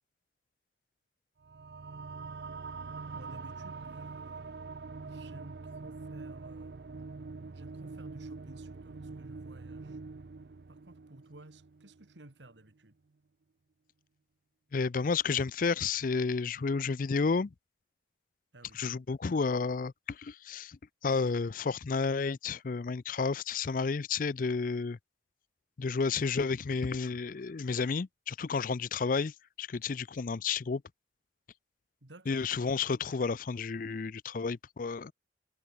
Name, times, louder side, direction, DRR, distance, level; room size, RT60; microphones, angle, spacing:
sound 1, 1.4-12.3, right 4 dB, 65° right, 0.6 m, -44 dB
voice 1, 3.1-4.8 5.0-6.8 7.5-10.0 10.7-13.0 18.5-18.9 32.0-32.4, right 1 dB, 90° right, 2.4 m, -54 dB
voice 2, 14.7-17.5 18.7-25.0 25.8-30.8 32.3-35.1, left 4 dB, 50° left, 0.4 m, -31 dB
head